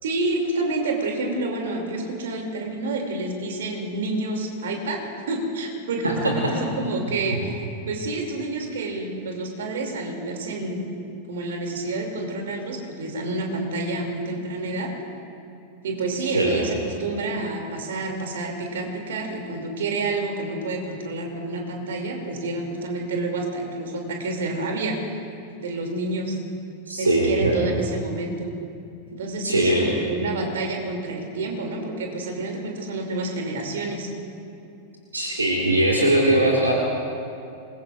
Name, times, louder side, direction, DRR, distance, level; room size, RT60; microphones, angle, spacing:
voice 1, 0.0-5.0 5.3-10.9 11.3-14.9 15.8-25.0 25.6-26.4 27.0-28.5 29.1-34.1, right 2 dB, 60° right, 2 dB, 2.6 m, -28 dB
voice 2, 16.3-16.7 26.9-27.7 29.4-30.0 35.1-36.7, right 1 dB, 80° right, -1 dB, 1.9 m, -20 dB
26.5 x 21.0 x 2.5 m, 2.6 s
figure-of-eight pair, 90°, 0 cm